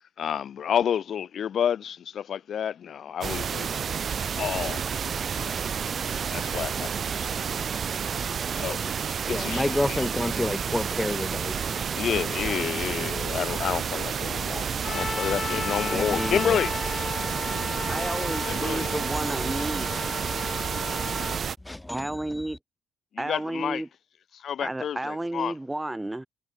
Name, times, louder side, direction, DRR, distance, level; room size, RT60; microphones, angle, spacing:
voice 1, 0.2-3.9 4.4-4.8 5.3-5.6 6.3-7.3 8.5-8.8 9.3-9.6 9.9-10.0 11.9-16.7 18.5-18.9 23.1-23.8 24.3-25.5, left 8 dB, 60° left, 6.2 m, -29 dB
sound 1, 3.2-21.6, right 7 dB, 50° right, 1.0 m, -30 dB
voice 2, 9.3-11.6 15.9-16.6 18.9-19.8 21.6-22.6, left 1 dB, 10° left, 0.7 m, -30 dB
Trumpet, 14.8-21.4, left 5 dB, 40° left, 2.7 m, -34 dB
voice 3, 17.9-20.2 21.9-22.6 23.2-23.9 24.6-26.3, right 1 dB, 10° right, 2.4 m, -32 dB
cardioid pair, 90°, 0 cm